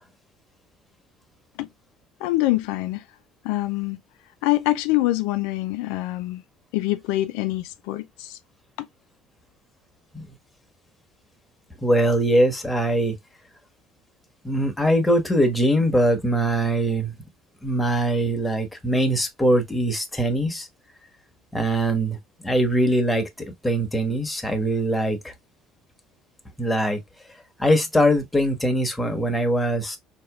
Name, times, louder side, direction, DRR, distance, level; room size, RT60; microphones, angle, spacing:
voice 1, 2.2-3.0 3.4-4.0 4.4-6.4 6.7-8.4 8.8-8.9, left 17 dB, 80° left, 0.3 m, -25 dB
voice 2, 11.8-13.2 14.4-17.1 17.6-20.7 21.5-22.2 22.4-23.3 23.6-25.3 26.6-27.0 27.6-30.0, right 1 dB, 10° left, 1.2 m, -22 dB
4.0 x 3.0 x 2.3 m
hypercardioid pair, 75°, 0 cm